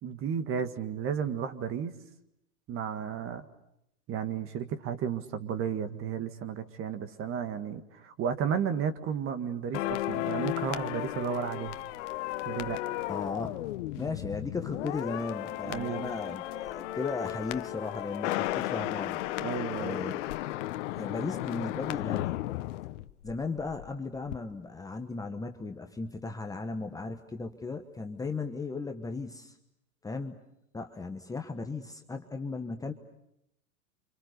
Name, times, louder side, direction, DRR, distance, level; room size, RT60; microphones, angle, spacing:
voice 1, 0.0-1.9 2.7-3.4 4.1-11.8 12.4-12.8 15.6-16.2 19.4-20.2, right 7 dB, 30° right, 10 dB, 1.8 m, -33 dB
sound 1, 9.7-23.9 24.1-24.4, left 16 dB, 55° left, 1.2 m, -34 dB
voice 2, 13.1-13.6 14.0-19.2 19.8-20.4 20.8-22.4 23.2-29.5 30.0-30.4 30.7-32.9, left 3 dB, 10° left, 4 dB, 1.2 m, -36 dB
30.0 x 26.0 x 6.7 m, 0.81 s
hypercardioid pair, 130°, 43 cm